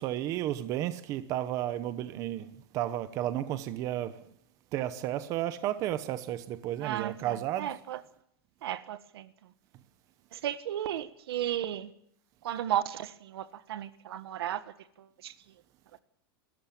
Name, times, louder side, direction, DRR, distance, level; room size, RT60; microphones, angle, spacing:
voice 1, 0.0-4.2 4.7-7.7, right 12 dB, 25° right, 1.0 m, -33 dB
voice 2, 6.8-8.0 8.6-9.3 10.3-11.9 12.4-14.6 15.0-15.3, right 11 dB, 85° right, 1.6 m, -34 dB
27.0 x 14.0 x 8.7 m
supercardioid pair, 180°, 13 cm